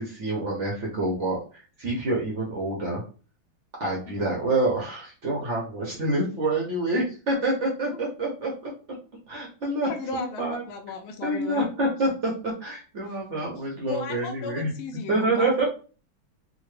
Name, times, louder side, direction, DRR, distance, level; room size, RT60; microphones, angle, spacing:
voice 1, 0.0-3.0 3.8-8.7 9.3-10.6 11.2-14.7 15.1-15.6, right 2 dB, 75° right, -2 dB, 0.6 m, -27 dB
voice 2, 9.9-11.7 13.9-15.7, left 3 dB, 75° left, 3 dB, 1.4 m, -35 dB
3.8 x 2.2 x 3.1 m, 0.37 s
omnidirectional pair, 2.4 m